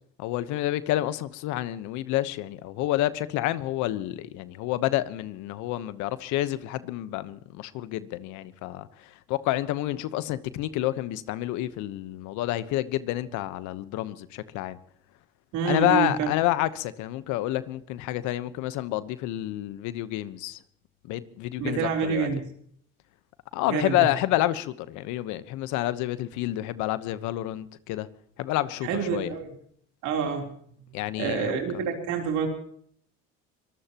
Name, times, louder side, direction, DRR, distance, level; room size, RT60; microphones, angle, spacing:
voice 1, 0.2-8.9 9.3-14.8 15.6-20.6 21.1-22.3 23.5-28.1 28.4-29.3 30.9-31.8, left 15 dB, 75° left, 1.1 m, -29 dB
voice 2, 15.5-16.3 21.6-22.4 23.7-24.0 28.8-29.5 30.0-30.5 31.2-32.5, right 6 dB, 75° right, 3.7 m, -27 dB
24.5 x 19.5 x 3.0 m
supercardioid pair, 80°, 30 cm